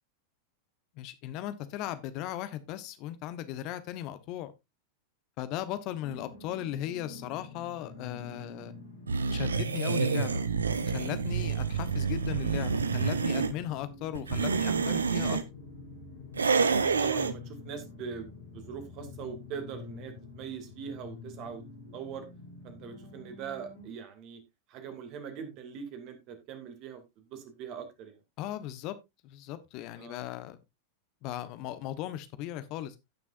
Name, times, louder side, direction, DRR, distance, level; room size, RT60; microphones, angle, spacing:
voice 1, 0.9-4.5 5.4-8.7 9.3-10.4 10.9-15.4 28.4-29.0 29.2-30.6 31.2-32.9, left 12 dB, 40° left, 1.1 m, -37 dB
sound 1, 6.0-23.9, left 3 dB, 75° left, 3.6 m, -47 dB
sound 2, 9.1-13.5 14.1-15.4 16.3-17.3, right 5 dB, 75° right, 0.8 m, -28 dB
voice 2, 16.6-21.6 21.9-22.3 22.6-24.4 24.7-28.2 30.0-30.3, right 7 dB, 40° right, 2.5 m, -42 dB
16.5 x 6.1 x 2.6 m
figure-of-eight pair, 90°, 0 cm